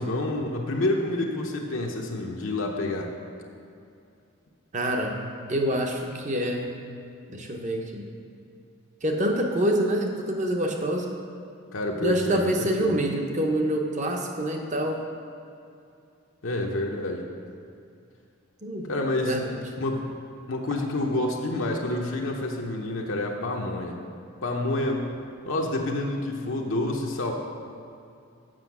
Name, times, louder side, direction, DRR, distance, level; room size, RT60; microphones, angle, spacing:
voice 1, 0.0-3.1 11.7-13.0 16.4-17.3 18.8-19.4 19.8-20.1 20.5-24.0 24.4-25.2 25.4-27.3, left 2 dB, 65° left, 0 dB, 0.7 m, -28 dB
voice 2, 4.7-5.2 5.5-6.7 7.3-8.1 9.0-11.1 12.0-15.0 18.6-18.9 19.2-19.5, right 1 dB, 35° right, 2 dB, 0.8 m, -26 dB
7.6 x 6.2 x 6.0 m, 2.5 s
head